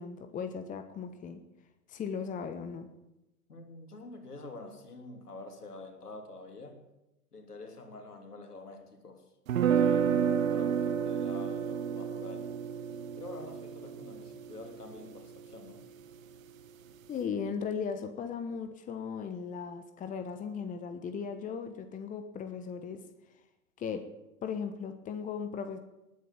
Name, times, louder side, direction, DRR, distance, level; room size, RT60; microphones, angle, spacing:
voice 1, 0.0-1.4 1.9-2.9 17.1-23.0 23.8-24.0 24.4-25.8, left 6 dB, 15° left, 9 dB, 1.2 m, -37 dB
voice 2, 3.5-6.9 7.3-9.2 9.5-10.1 10.5-12.5 13.1-15.8, left 2 dB, 80° left, 5 dB, 3.2 m, -47 dB
sound 1, 9.5-15.5, right 8 dB, 60° right, 1.3 m, -30 dB
20.0 x 9.4 x 7.5 m, 0.96 s
figure-of-eight pair, 105°, 45 cm